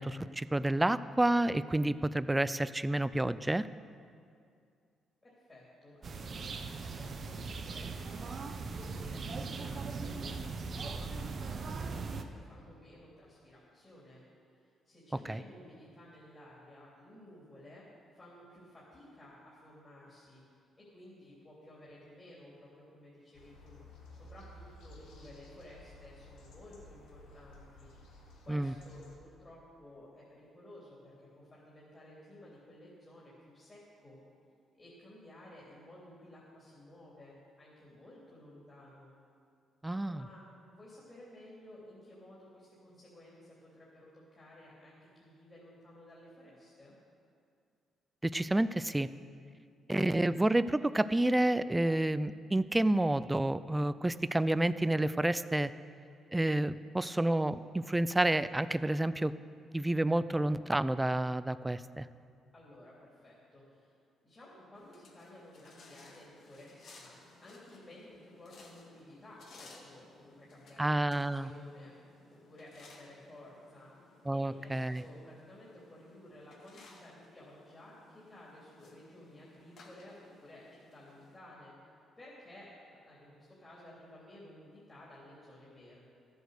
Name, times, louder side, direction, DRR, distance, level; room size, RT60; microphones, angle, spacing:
voice 1, 0.0-3.7 15.3-15.4 28.5-28.7 39.8-40.2 48.2-49.1 49.9-55.7 56.3-59.3 59.7-62.1 70.8-71.5 74.3-75.0, right 1 dB, 10° right, 15 dB, 0.4 m, -29 dB
voice 2, 5.2-6.5 6.8-8.4 8.7-14.2 14.8-17.8 18.1-20.4 20.8-23.8 24.1-27.9 28.4-34.2 34.8-39.1 40.0-46.9 62.5-63.9 64.2-73.9 74.3-81.7 82.2-82.7 83.0-86.1, left 1 dB, 25° left, -7 dB, 3.0 m, -54 dB
sound 1, 6.0-12.2, right 4 dB, 50° right, 0.8 m, -39 dB
sound 2, 23.3-29.2, left 1 dB, 90° left, 1.8 m, -54 dB
sound 3, 64.7-81.4, left 3 dB, 60° left, 1.9 m, -59 dB
13.5 x 8.0 x 6.5 m, 2.3 s
cardioid pair, 90°, 0 cm